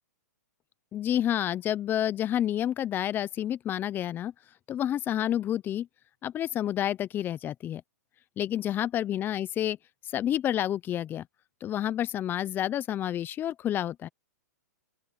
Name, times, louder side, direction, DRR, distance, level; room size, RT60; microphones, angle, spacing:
voice 1, 0.9-4.3 4.7-5.9 6.2-7.8 8.4-9.8 10.1-11.2 11.6-14.1, left 11 dB, 20° left, 0.8 m, -29 dB
open air
hypercardioid pair, 130°, 10 cm